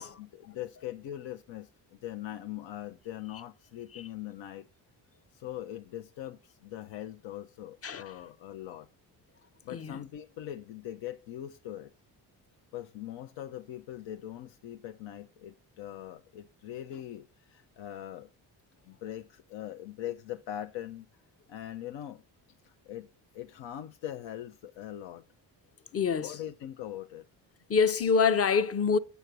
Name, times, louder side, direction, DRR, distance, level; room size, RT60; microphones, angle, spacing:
voice 1, 0.0-4.7 5.3-8.9 9.6-11.9 12.7-18.3 18.8-21.1 21.5-22.2 22.5-23.1 23.3-25.2 26.2-27.2, left 12 dB, 70° left, 0.7 m, -41 dB
voice 2, 9.7-10.0 25.9-26.4 27.7-29.0, left 5 dB, 30° left, 0.7 m, -26 dB
8.0 x 6.9 x 6.0 m
supercardioid pair, 65°, 45 cm